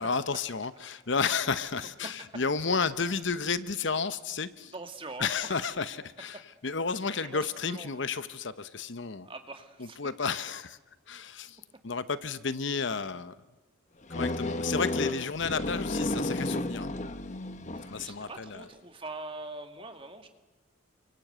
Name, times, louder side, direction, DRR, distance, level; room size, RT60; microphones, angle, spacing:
voice 1, 0.0-4.7 5.2-9.3 9.8-10.8 11.1-11.6 11.8-13.3 14.1-16.9 17.9-18.7, left 5 dB, 55° left, 0.9 m, -32 dB
voice 2, 4.7-5.6 7.2-8.0 9.2-10.0 17.8-20.3, right 2 dB, 25° right, 2.1 m, -43 dB
sound 1, 14.1-18.1, left 2 dB, 35° left, 1.1 m, -32 dB
29.0 x 24.5 x 8.1 m
head